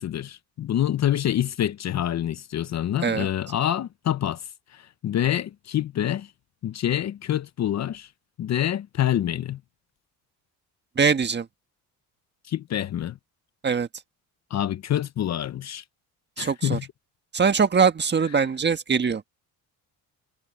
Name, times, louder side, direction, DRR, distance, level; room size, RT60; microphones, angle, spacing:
voice 1, 0.0-6.3 6.6-8.1 8.4-9.6 12.5-13.2 14.5-15.8 16.4-16.8, left 11 dB, 45° left, 0.8 m, -26 dB
voice 2, 11.0-11.5 13.6-13.9 16.4-16.8 17.3-19.2, right 6 dB, 25° right, 1.5 m, -22 dB
cardioid pair, 110°, 38 cm